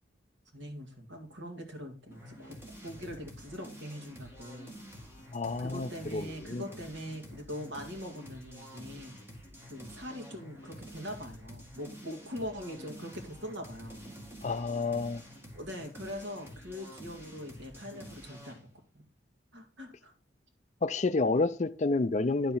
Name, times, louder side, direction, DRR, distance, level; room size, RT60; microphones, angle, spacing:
voice 1, 0.5-4.7 5.6-9.2 9.7-14.1 15.5-19.0 19.5-20.1, equal, 85° right, 2.1 m, -42 dB
sound 1, 2.1-18.6, equal, 15° right, 1.9 m, -49 dB
voice 2, 5.3-6.6 14.4-15.2 20.8-22.6, left 3 dB, 40° left, 0.4 m, -29 dB
9.5 x 6.2 x 3.9 m
head